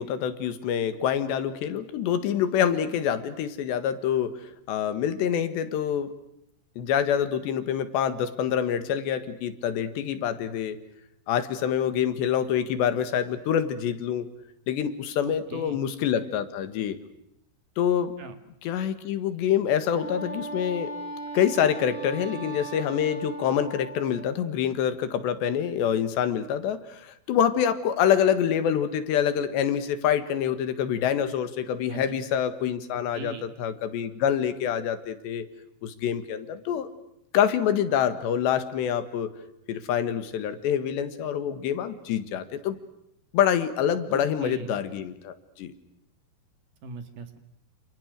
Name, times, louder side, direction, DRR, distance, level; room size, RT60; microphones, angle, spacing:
voice 1, 0.0-4.3 4.7-6.1 6.8-10.8 11.3-14.3 14.7-17.0 17.8-18.1 18.7-20.9 21.3-35.5 35.8-36.9 37.3-39.3 39.7-42.8 43.3-45.7, left 9 dB, 85° left, 11 dB, 3.9 m, -26 dB
voice 2, 15.2-15.8 18.2-18.4 31.9-32.2 32.9-33.6 44.1-44.8 46.8-47.4, right 5 dB, 55° right, 9 dB, 3.2 m, -40 dB
Wind instrument woodwind instrument, 19.7-24.4, right 3 dB, 5° left, 6.6 m, -38 dB
29.0 x 28.0 x 6.5 m, 0.80 s
omnidirectional pair, 4.9 m